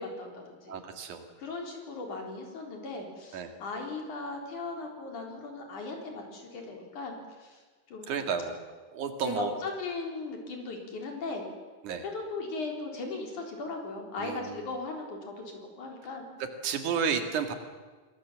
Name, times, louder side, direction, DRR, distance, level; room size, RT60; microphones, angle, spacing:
voice 1, 0.0-0.8 1.4-7.6 7.9-8.1 9.2-11.5 12.0-16.2, left 3 dB, 75° left, 2 dB, 5.2 m, -38 dB
voice 2, 0.7-1.2 3.3-3.5 8.1-8.6 8.9-9.5 11.8-12.0 14.2-14.6 16.6-17.5, right 6 dB, 75° right, 6 dB, 3.4 m, -31 dB
26.5 x 19.0 x 7.4 m, 1.3 s
omnidirectional pair, 3.5 m